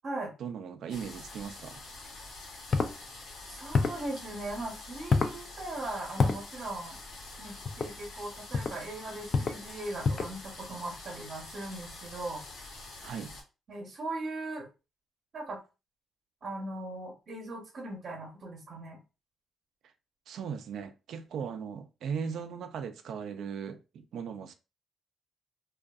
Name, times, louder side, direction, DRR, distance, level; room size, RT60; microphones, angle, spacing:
voice 1, 0.4-1.8 13.0-13.3 20.3-24.5, right 7 dB, 70° right, 0.4 m, -38 dB
sound 1, 0.9-13.4, left 2 dB, 85° left, 1.0 m, -46 dB
sound 2, 2.7-2.9 3.7-4.0 5.1-5.4 6.2-6.4 7.6-7.9 8.5-8.8 9.3-9.6 10.0-10.4, left 4 dB, 45° left, 0.4 m, -27 dB
voice 2, 3.5-7.0 7.4-12.4 13.7-14.7 15.3-15.6 16.4-19.0, right 2 dB, 50° right, 0.8 m, -39 dB
2.5 x 2.3 x 2.3 m
cardioid pair, 90°, 0 cm